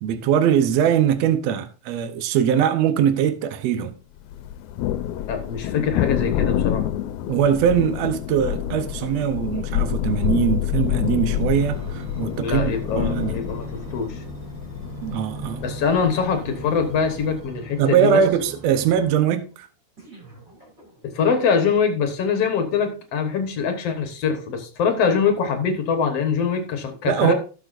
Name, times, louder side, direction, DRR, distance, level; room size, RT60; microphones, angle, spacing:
voice 1, 0.0-4.0 7.3-13.4 15.0-15.6 17.8-19.7 27.1-27.3, right 9 dB, 70° right, 1.9 m, -21 dB
Thunder, 4.3-17.5, left 11 dB, 85° left, 2.1 m, -27 dB
voice 2, 5.3-6.9 12.4-14.2 15.6-18.2 21.0-27.3, left 6 dB, 60° left, 2.2 m, -23 dB
sound 1, 11.4-19.4 20.0-21.3 21.9-22.0, right 2 dB, 25° right, 3.4 m, -39 dB
16.5 x 6.6 x 2.6 m
omnidirectional pair, 3.4 m